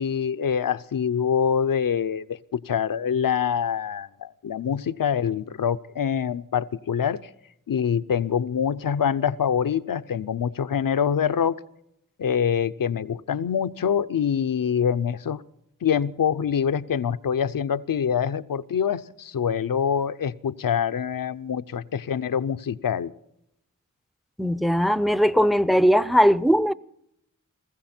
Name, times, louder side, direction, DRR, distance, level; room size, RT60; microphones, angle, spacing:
voice 1, 0.0-7.3 7.7-11.6 12.2-15.4 15.8-23.1, left 7 dB, 80° left, 0.7 m, -25 dB
voice 2, 24.4-26.7, equal, ahead, 0.6 m, -19 dB
20.0 x 15.0 x 4.4 m
cardioid pair, 45°, 34 cm